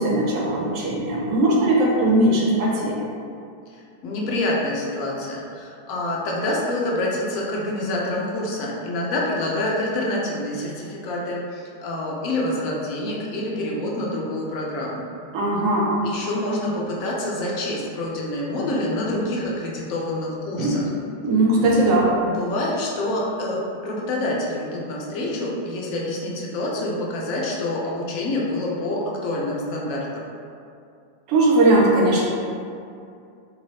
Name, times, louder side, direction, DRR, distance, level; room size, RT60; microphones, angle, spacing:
voice 1, 0.0-3.0 15.3-15.9 20.6-21.0 21.2-22.1 31.3-32.3, right 1 dB, 45° right, -4 dB, 0.7 m, -19 dB
voice 2, 4.0-15.1 16.0-20.8 22.3-30.2, left 1 dB, 45° left, -3 dB, 0.6 m, -27 dB
2.7 x 2.6 x 3.0 m, 2.4 s
figure-of-eight pair, 90°, 0 cm